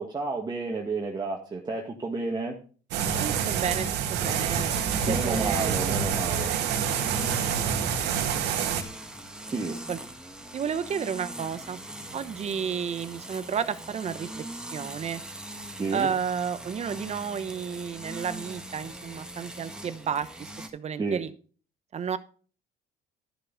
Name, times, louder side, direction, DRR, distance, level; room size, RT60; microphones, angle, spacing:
voice 1, 0.0-2.6 5.1-6.5 9.5-9.8 15.8-16.1 21.0-21.2, right 3 dB, 25° right, 0 dB, 1.7 m, -31 dB
sound 1, 2.9-8.8, right 7 dB, 85° right, 1.8 m, -27 dB
voice 2, 3.2-5.8 7.4-8.4 9.9-10.0 10.5-11.8 12.1-15.2 15.9-21.3 21.9-22.2, right 7 dB, 40° right, 13 dB, 0.9 m, -32 dB
sound 2, 4.7-20.7, right 1 dB, 5° right, 1.7 m, -41 dB
12.5 x 6.7 x 3.9 m, 0.39 s
cardioid pair, 110°, 17 cm